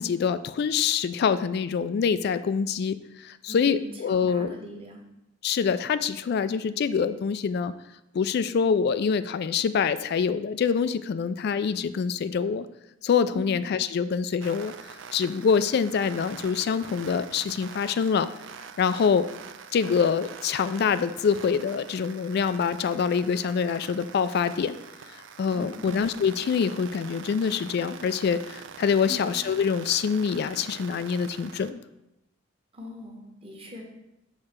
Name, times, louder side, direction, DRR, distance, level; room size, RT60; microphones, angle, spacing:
voice 1, 0.0-4.5 5.4-7.7 8.1-12.7 13.0-14.7 15.1-18.3 18.8-19.3 19.7-24.8 25.4-31.8, left 6 dB, 55° left, 14 dB, 0.3 m, -25 dB
voice 2, 3.5-5.0 13.3-13.6 25.5-26.0 29.0-29.4 32.7-33.8, equal, 30° right, 0 dB, 1.3 m, -41 dB
sound 1, 14.4-31.7, right 6 dB, 70° right, 0.4 m, -44 dB
6.6 x 3.2 x 6.0 m, 0.89 s
head